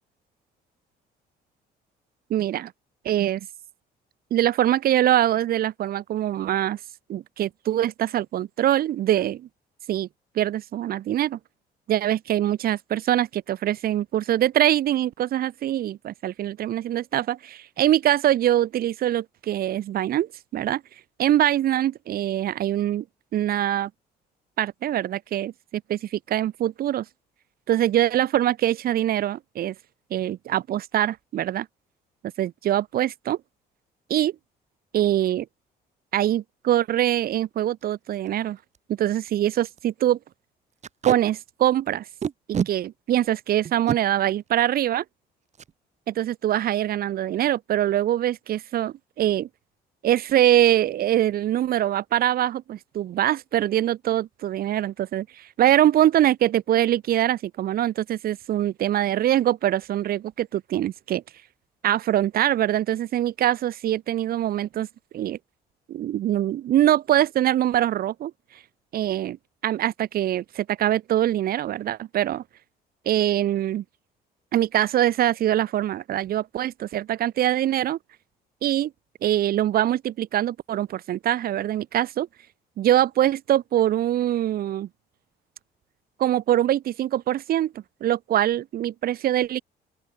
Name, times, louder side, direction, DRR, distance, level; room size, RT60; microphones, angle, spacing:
voice 1, 2.3-2.7 3.0-3.5 4.3-6.8 7.1-9.5 9.9-10.1 10.3-11.4 11.9-20.8 21.2-23.0 23.3-23.9 24.6-27.1 27.7-29.7 30.1-31.7 32.4-33.4 34.1-34.3 34.9-35.5 36.1-38.6 38.9-40.2 41.0-42.0 42.5-45.0 46.1-49.5 50.0-61.2 61.8-64.9 65.1-65.4 65.9-68.3 68.9-69.4 69.6-72.4 73.1-73.8 74.5-78.0 78.6-78.9 79.2-82.3 82.8-84.9 86.2-89.6, right 12 dB, 60° right, 2.4 m, -23 dB
Packing tape duct tape, 37.2-37.4 37.8-37.9 38.1-38.3 38.7-38.8 39.1-39.3 39.6-39.8 40.8-41.2 42.2-42.7 43.6-44.0 45.5-45.7 46.1-46.2 46.5-46.9, right 7 dB, 45° right, 4.3 m, -28 dB
open air
cardioid pair, 110°, 17 cm